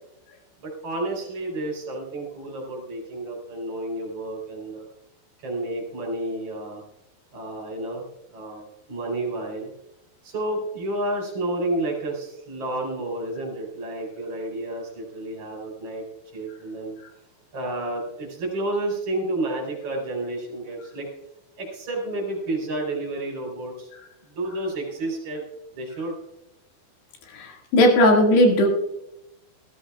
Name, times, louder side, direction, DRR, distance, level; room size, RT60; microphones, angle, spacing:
voice 1, 0.6-4.9 5.4-6.8 7.3-8.0 8.3-9.7 10.2-16.0 16.3-16.9 17.5-21.1 21.6-23.9 24.3-25.4 25.7-26.1, right 2 dB, 35° right, 0 dB, 4.5 m, -30 dB
voice 2, 27.4-28.7, left 1 dB, 65° left, 0 dB, 4.0 m, -17 dB
19.0 x 13.5 x 2.4 m, 0.86 s
omnidirectional pair, 5.5 m